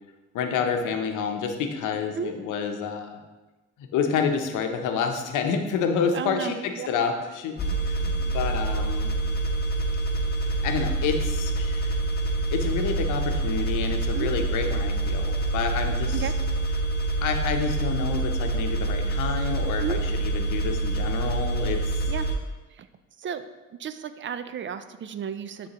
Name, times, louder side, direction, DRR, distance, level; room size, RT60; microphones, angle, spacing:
voice 1, 0.3-3.2 3.8-9.1 10.4-12.0 12.5-16.3 17.2-21.8, left 6 dB, 85° left, 5 dB, 0.7 m, -29 dB
voice 2, 6.1-6.9 14.1-14.3 16.1-16.4 19.8-20.0 22.1-22.3 22.7-22.9 23.2-23.5 23.8-25.7, right 8 dB, 40° right, 11 dB, 0.4 m, -33 dB
sound 1, 7.6-22.4, right 2 dB, 35° left, 0.8 m, -26 dB
9.4 x 3.5 x 2.9 m, 1.2 s
cardioid pair, 90°, 30 cm